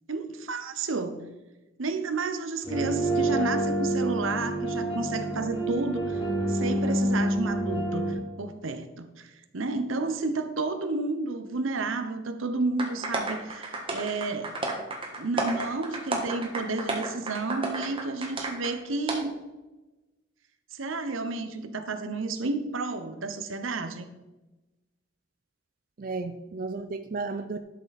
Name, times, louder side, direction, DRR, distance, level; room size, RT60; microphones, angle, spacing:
voice 1, 0.1-1.2 1.8-6.2 6.5-14.5 15.2-19.3 20.7-24.1, right 3 dB, 85° right, 9 dB, 0.9 m, -31 dB
sound 1, 2.6-8.1, right 1 dB, 25° left, 3.0 m, -28 dB
sound 2, 12.8-18.7 19.1-19.2, right 2 dB, 25° right, 1.5 m, -32 dB
voice 2, 26.0-27.6, right 3 dB, 45° right, 8 dB, 0.4 m, -34 dB
11.5 x 6.7 x 4.1 m, 1.1 s
head